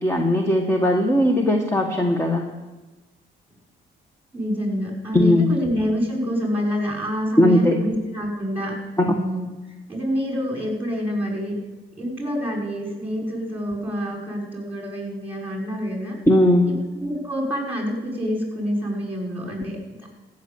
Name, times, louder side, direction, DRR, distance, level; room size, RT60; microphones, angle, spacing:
voice 1, 0.0-2.4 5.1-5.5 7.4-7.8 9.0-9.1 16.3-16.7, left 1 dB, 15° left, 3 dB, 1.5 m, -18 dB
voice 2, 4.3-11.5 11.9-16.2 16.7-20.1, equal, 10° right, -1 dB, 6.0 m, -27 dB
15.5 x 6.9 x 8.6 m, 1.2 s
cardioid pair, 90°, 20 cm